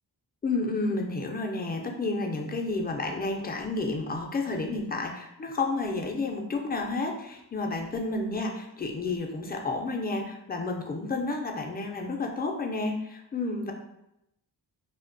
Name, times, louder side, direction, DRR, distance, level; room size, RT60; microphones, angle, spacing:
voice 1, 0.4-13.7, left 3 dB, 25° left, 2 dB, 0.3 m, -31 dB
2.5 x 2.1 x 2.5 m, 0.85 s
wide cardioid pair, 45°, 44 cm